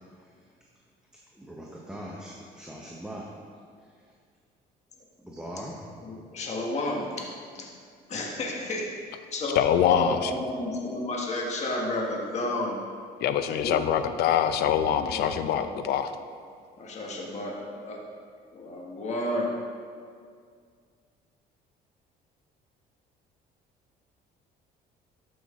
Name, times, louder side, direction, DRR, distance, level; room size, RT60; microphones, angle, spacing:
voice 1, 1.3-3.3 3.8-3.9 5.2-5.8, equal, 5° right, -3 dB, 1.0 m, -41 dB
voice 2, 6.0-7.7 8.1-8.8 9.3-12.8 13.6-13.8 15.1-15.8 16.8-18.0 18.5-19.5, left 1 dB, 40° left, -1 dB, 1.5 m, -32 dB
voice 3, 9.5-10.3 13.2-16.1, left 9 dB, 70° left, 10 dB, 0.6 m, -24 dB
12.5 x 6.0 x 3.7 m, 2.1 s
cardioid pair, 110°, 17 cm